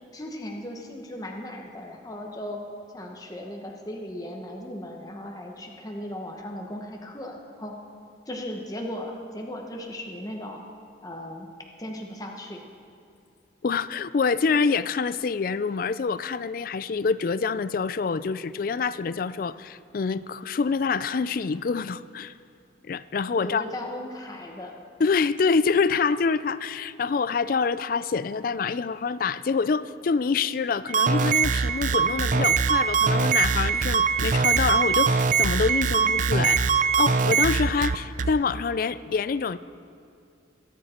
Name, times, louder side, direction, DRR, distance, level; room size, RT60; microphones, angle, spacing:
voice 1, 0.1-2.6 2.9-7.7 8.3-10.6 11.0-11.5 11.8-12.6 23.3-24.8, left 1 dB, 20° left, 1 dB, 1.1 m, -37 dB
voice 2, 13.6-22.3 22.8-23.6 25.0-36.6 37.0-39.6, left 5 dB, 50° left, 16 dB, 0.4 m, -26 dB
sound 1, 30.9-38.3, right 5 dB, 45° right, 0.5 m, -22 dB
22.5 x 9.5 x 4.4 m, 2.5 s
head